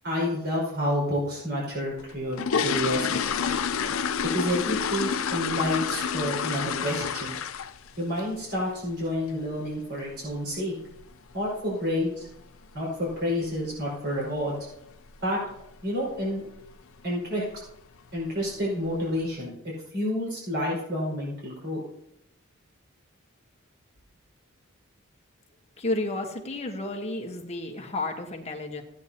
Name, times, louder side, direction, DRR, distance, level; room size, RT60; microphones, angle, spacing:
voice 1, 0.0-3.6 4.2-7.4 8.0-10.7 11.3-12.3 12.7-14.5 15.2-15.4 15.8-16.4 17.0-17.4 18.1-21.8, left 1 dB, 55° right, -5 dB, 5.1 m, -29 dB
sound 1, 2.0-7.9 8.2-8.5 8.8-8.9 9.3-9.4 9.8-10.0 10.3-10.4 11.0-11.1 11.3-11.5 12.0-12.3 12.6-12.7 13.1-13.3 13.6-13.7 14.1-14.2 14.8-15.2 15.5-15.8 16.2-16.3 16.7-16.8 17.6-17.7 18.1-18.6 19.0-19.1, left 6 dB, 70° left, 0.6 m, -29 dB
voice 2, 25.8-28.8, left 2 dB, 30° left, 3 dB, 1.4 m, -32 dB
15.0 x 9.7 x 2.9 m, 0.80 s
head